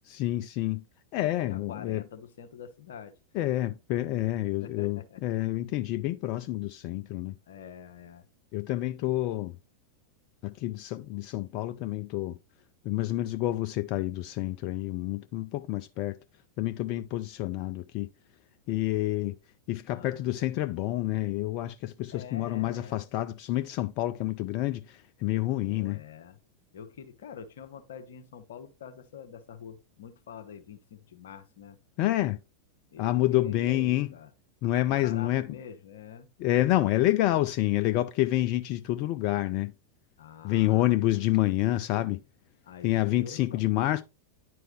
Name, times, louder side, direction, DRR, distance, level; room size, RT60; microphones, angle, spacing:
voice 1, 0.1-0.8 1.1-2.0 3.3-7.4 8.5-9.5 10.4-12.4 12.8-16.2 16.6-18.1 18.7-19.3 19.7-26.0 32.0-32.4 33.0-34.1 34.6-35.5 36.4-39.7 40.4-42.2 42.8-44.0, left 15 dB, 45° left, 0.4 m, -28 dB
voice 2, 1.4-3.1 4.6-5.2 7.5-8.2 19.9-20.2 22.1-23.1 25.7-26.4 26.7-31.8 32.9-34.3 34.9-36.3 40.2-41.0 42.6-44.0, left 7 dB, 60° left, 1.0 m, -45 dB
10.0 x 4.7 x 3.1 m
figure-of-eight pair, 90°, 0 cm